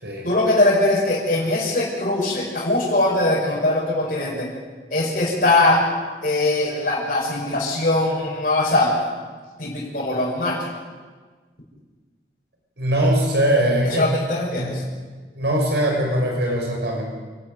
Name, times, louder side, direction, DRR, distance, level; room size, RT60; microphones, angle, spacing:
voice 1, 0.2-4.5 4.9-5.8 6.2-9.1 9.6-10.6 13.8-14.8, left 2 dB, 45° left, -7 dB, 6.2 m, -21 dB
voice 2, 12.8-14.0 14.6-14.7 15.4-17.0, right 1 dB, 70° right, 0 dB, 6.5 m, -21 dB
28.5 x 13.0 x 9.5 m, 1.4 s
head